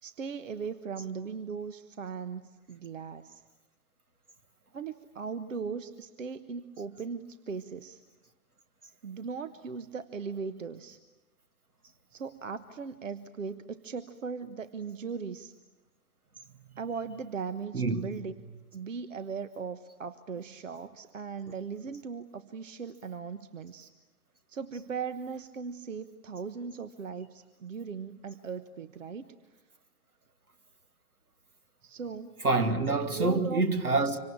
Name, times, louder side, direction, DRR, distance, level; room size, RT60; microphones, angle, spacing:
voice 1, 0.0-3.4 4.7-8.0 9.0-11.0 12.1-15.5 16.8-18.3 18.7-23.9 24.5-29.3 31.8-32.4 33.1-33.6, right 5 dB, 60° right, 1.3 m, -38 dB
voice 2, 17.7-18.1 32.4-34.2, right 3 dB, 80° right, 2.6 m, -26 dB
26.0 x 25.0 x 8.6 m
figure-of-eight pair, 125°, 44 cm